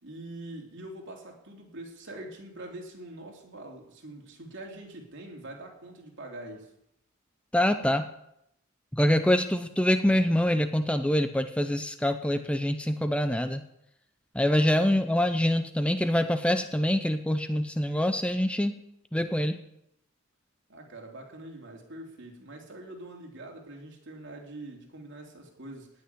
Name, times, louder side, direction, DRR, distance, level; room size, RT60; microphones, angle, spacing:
voice 1, 0.0-6.7 20.7-25.9, right 1 dB, 60° right, 1 dB, 3.5 m, -44 dB
voice 2, 7.5-8.1 8.9-13.6 14.3-18.8 19.1-19.6, left 1 dB, 5° left, 9 dB, 0.7 m, -25 dB
18.0 x 6.5 x 9.5 m, 0.78 s
head